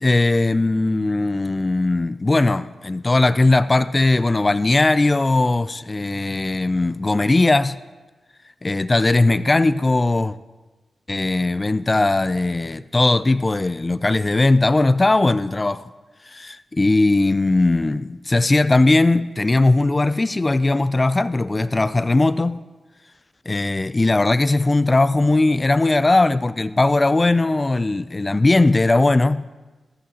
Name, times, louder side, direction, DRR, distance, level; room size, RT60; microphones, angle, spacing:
voice 1, 0.0-7.8 8.6-10.4 11.1-15.8 16.3-22.6 23.5-29.5, left 2 dB, 30° left, 0.3 m, -19 dB
14.0 x 7.6 x 2.9 m
cardioid pair, 50°, 0 cm